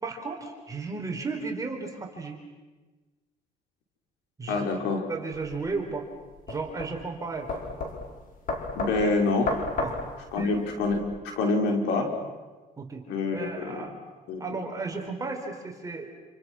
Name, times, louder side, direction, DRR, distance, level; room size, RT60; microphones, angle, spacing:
voice 1, 0.0-2.4 4.4-4.7 5.1-6.1 6.5-7.5 9.8-10.0 10.4-10.5 12.8-13.0 13.3-14.0 14.4-16.1, right 4 dB, 20° right, 1 dB, 4.6 m, -34 dB
voice 2, 4.5-5.1 8.8-9.5 10.3-12.1 13.1-13.9 14.3-14.6, left 3 dB, 90° left, 2 dB, 5.7 m, -26 dB
sound 1, 5.3-11.0, left 3 dB, 55° left, 5.5 m, -34 dB
29.0 x 29.0 x 6.4 m, 1.3 s
cardioid pair, 110°, 17 cm